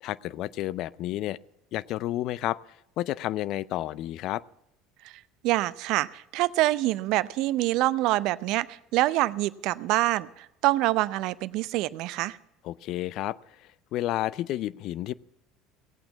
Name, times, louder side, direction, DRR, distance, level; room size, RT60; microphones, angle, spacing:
voice 1, 0.0-1.4 1.7-2.6 3.0-4.4 12.6-13.4 13.9-15.1, left 14 dB, 60° left, 20 dB, 0.5 m, -30 dB
voice 2, 5.0-12.4, right 17 dB, 65° right, 18 dB, 0.6 m, -26 dB
18.0 x 8.8 x 7.1 m, 0.85 s
hypercardioid pair, 70°, 0 cm